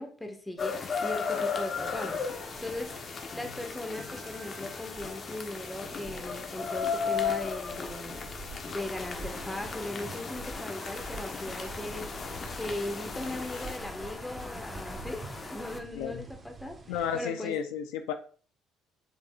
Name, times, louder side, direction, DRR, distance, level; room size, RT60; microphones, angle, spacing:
voice 1, 0.0-3.0 3.3-8.2 8.7-12.1 12.6-15.2 15.5-17.5, left 1 dB, 10° left, 3 dB, 1.7 m, -38 dB
sound 1, 0.6-13.8, left 6 dB, 45° left, 1.2 m, -36 dB
sound 2, 1.7-17.2, right 3 dB, 30° right, 1.4 m, -47 dB
sound 3, 8.8-15.8, left 2 dB, 25° left, 1.3 m, -43 dB
voice 2, 16.9-18.1, left 8 dB, 85° left, 8 dB, 0.6 m, -32 dB
9.1 x 5.1 x 2.5 m, 0.40 s
supercardioid pair, 75°, 0 cm